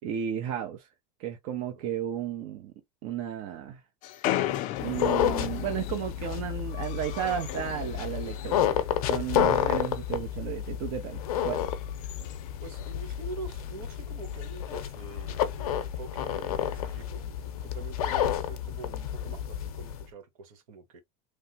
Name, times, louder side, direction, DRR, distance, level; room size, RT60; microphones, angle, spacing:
voice 1, 0.0-0.9 1.2-2.7 3.0-3.8 4.8-11.6, right 9 dB, 55° right, 0.8 m, -33 dB
sound 1, 4.0-8.8 9.1-10.1 10.4-10.7 11.2-13.2 13.5-13.6 13.8-13.9 14.2-14.6 15.5-15.6 16.4-16.8, left 13 dB, 45° left, 0.4 m, -37 dB
sound 2, 4.8-20.0, left 10 dB, 85° left, 0.6 m, -30 dB
voice 2, 12.6-21.0, right 4 dB, 80° right, 1.3 m, -45 dB
3.2 x 2.1 x 2.8 m
supercardioid pair, 130°, 18 cm